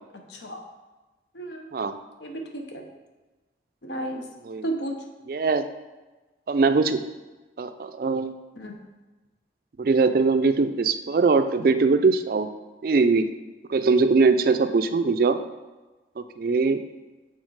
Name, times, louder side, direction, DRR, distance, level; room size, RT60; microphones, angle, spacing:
voice 1, 0.1-0.6 1.3-1.7 2.2-2.8 3.8-4.3 4.6-4.9 8.6-8.8, right 1 dB, 75° left, 2 dB, 0.9 m, -33 dB
voice 2, 5.3-5.6 6.5-7.0 7.6-8.3 9.8-12.5 12.8-13.2 13.7-15.4 16.4-16.8, right 4 dB, 50° right, 9 dB, 0.4 m, -21 dB
6.4 x 3.8 x 4.7 m, 1.2 s
head